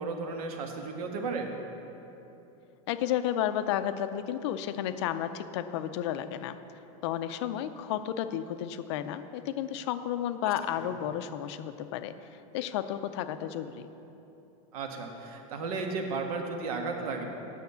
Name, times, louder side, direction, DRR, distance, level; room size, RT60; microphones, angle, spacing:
voice 1, 0.0-1.6 10.8-10.9 14.7-17.2, right 4 dB, 85° right, 3 dB, 1.5 m, -34 dB
voice 2, 2.9-6.6 7.0-12.1 12.5-13.9, left 11 dB, 50° left, 11 dB, 0.5 m, -32 dB
9.2 x 7.1 x 6.9 m, 2.9 s
supercardioid pair, 175°, 18 cm